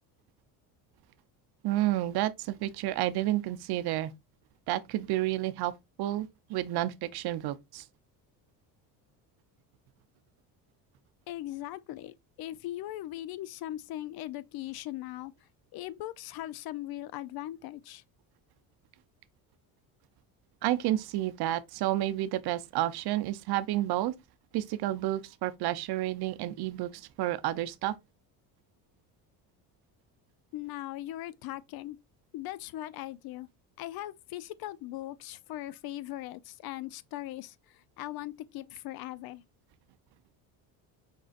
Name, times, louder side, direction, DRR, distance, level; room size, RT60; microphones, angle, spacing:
voice 1, 1.6-4.1 4.7-5.7 6.0-7.9 20.6-24.1 24.5-27.9, right 14 dB, 60° right, 0.7 m, -30 dB
voice 2, 11.3-15.3 15.7-18.0 30.5-32.0 32.3-33.5 33.8-39.4, left 14 dB, 60° left, 0.6 m, -39 dB
5.4 x 3.9 x 2.4 m
supercardioid pair, 95°, 43 cm